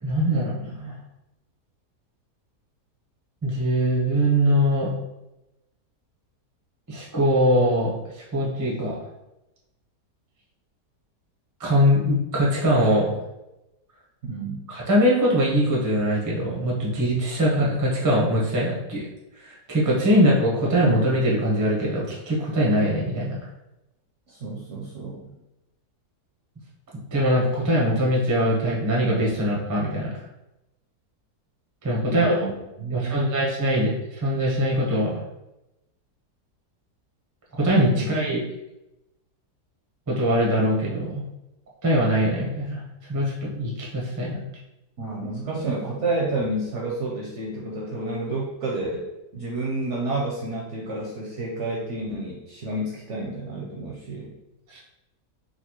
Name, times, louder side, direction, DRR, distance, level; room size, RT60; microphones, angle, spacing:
voice 1, 0.0-0.9 3.4-4.9 6.9-7.9 8.3-9.0 11.6-13.1 14.7-19.1 19.4-23.4 27.1-30.1 31.8-32.5 32.9-35.2 37.6-38.4 40.1-41.2 41.8-42.8 43.1-44.4 54.7-54.8, equal, 30° right, -4 dB, 0.3 m, -22 dB
voice 2, 14.2-14.7 24.3-25.4 32.0-32.5 32.8-33.4 37.9-38.1 45.0-49.1 49.3-54.4, right 2 dB, 65° right, -3 dB, 0.7 m, -30 dB
4.0 x 2.3 x 2.9 m, 0.94 s
omnidirectional pair, 1.8 m